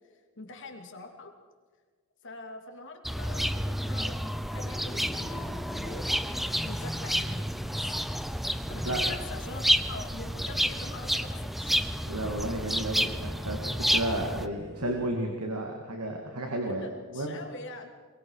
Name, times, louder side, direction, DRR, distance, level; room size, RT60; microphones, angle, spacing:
voice 1, 0.4-1.3 2.2-8.0 8.7-12.1 16.8-17.9, left 2 dB, 60° left, 4 dB, 2.9 m, -44 dB
sound 1, 3.0-14.5, equal, ahead, 0.7 m, -30 dB
sound 2, 7.7-15.1, right 1 dB, 50° right, 2.8 m, -50 dB
voice 2, 12.1-17.4, right 1 dB, 85° right, 2 dB, 2.6 m, -33 dB
23.0 x 22.5 x 5.0 m, 1.5 s
head